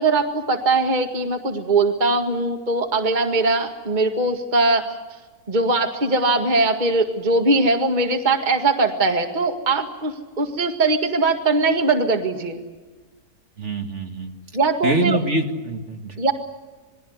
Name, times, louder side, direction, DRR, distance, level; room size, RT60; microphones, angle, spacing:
voice 1, 0.0-4.8 5.5-12.6 14.5-15.2 16.2-16.3, right 3 dB, 30° right, 5 dB, 2.0 m, -21 dB
voice 2, 13.6-14.3 14.8-16.1, right 2 dB, 50° right, 4 dB, 2.3 m, -24 dB
27.5 x 20.5 x 8.1 m, 1.3 s
omnidirectional pair, 1.6 m